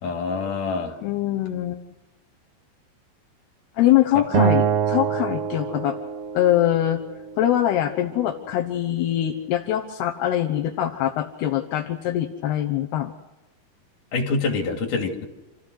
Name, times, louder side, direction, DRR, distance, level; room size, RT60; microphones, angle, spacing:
voice 1, 0.0-1.0 4.1-4.5 14.1-15.2, left 4 dB, 55° left, 2 dB, 4.0 m, -26 dB
voice 2, 1.0-1.8 3.7-6.0 6.3-7.0 7.4-13.1, left 12 dB, 80° left, 3 dB, 3.2 m, -23 dB
Acoustic guitar, 4.3-7.6, right 7 dB, 80° right, 1.3 m, -25 dB
27.5 x 15.0 x 6.4 m, 1.0 s
omnidirectional pair, 4.6 m